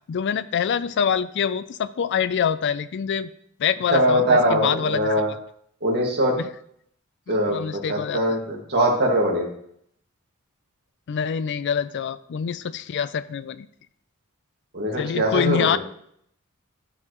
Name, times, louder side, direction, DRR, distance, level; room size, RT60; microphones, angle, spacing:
voice 1, 0.1-3.3 3.6-5.2 6.4-6.5 7.3-8.4 11.1-13.7 15.0-15.8, left 7 dB, 50° left, 15 dB, 0.4 m, -25 dB
voice 2, 3.9-5.3 5.8-6.4 7.3-9.5 14.7-15.8, equal, 50° right, -1 dB, 1.9 m, -22 dB
13.0 x 4.8 x 3.1 m, 0.69 s
head